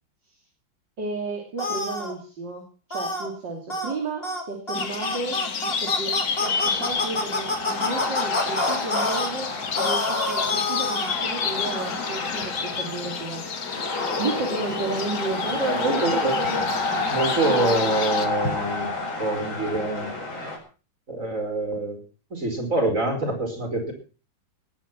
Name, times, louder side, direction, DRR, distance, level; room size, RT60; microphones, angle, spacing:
voice 1, 1.0-2.6 2.9-5.4 5.8-13.5 14.2-16.6 17.4-17.9, right 3 dB, 60° right, 2 dB, 3.7 m, -32 dB
sound 1, 1.6-2.1 2.9-3.3 3.7-3.9 4.2-4.4 4.7-9.3 9.7-11.2, left 2 dB, 30° left, 3.3 m, -27 dB
sound 2, 4.7-18.3, left 6 dB, 50° left, 1.8 m, -31 dB
sound 3, 6.4-20.6, left 3 dB, 70° left, 5.9 m, -30 dB
voice 2, 15.6-16.3 17.1-18.9 19.2-20.1 21.1-22.0 22.3-23.9, right 2 dB, 40° right, 3 dB, 5.4 m, -25 dB
19.0 x 10.0 x 6.0 m, 0.37 s
omnidirectional pair, 2.2 m